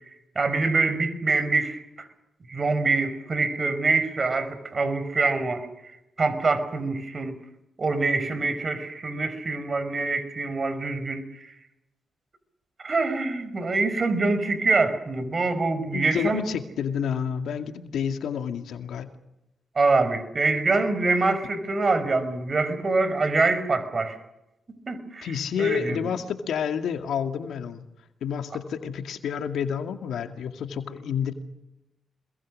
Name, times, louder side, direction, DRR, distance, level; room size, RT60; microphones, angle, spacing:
voice 1, 0.3-2.1 2.5-5.7 6.2-7.4 7.8-11.5 12.8-16.4 19.7-24.2 24.7-25.3 25.6-26.0, right 3 dB, 45° right, 12 dB, 5.1 m, -25 dB
voice 2, 15.9-19.1 25.2-27.8 28.2-31.3, left 7 dB, 75° left, 7 dB, 2.2 m, -29 dB
26.5 x 22.0 x 6.5 m, 0.91 s
supercardioid pair, 55°, 0 cm